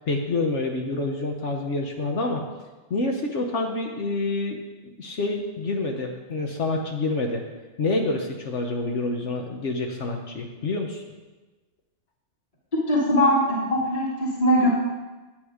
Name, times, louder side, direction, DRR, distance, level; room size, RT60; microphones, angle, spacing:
voice 1, 0.0-2.4 2.9-4.6 5.0-7.4 7.8-11.0, left 2 dB, 60° left, 2 dB, 1.3 m, -27 dB
voice 2, 12.7-14.7, equal, 25° left, -4 dB, 2.0 m, -21 dB
10.5 x 8.1 x 5.0 m, 1.2 s
omnidirectional pair, 1.4 m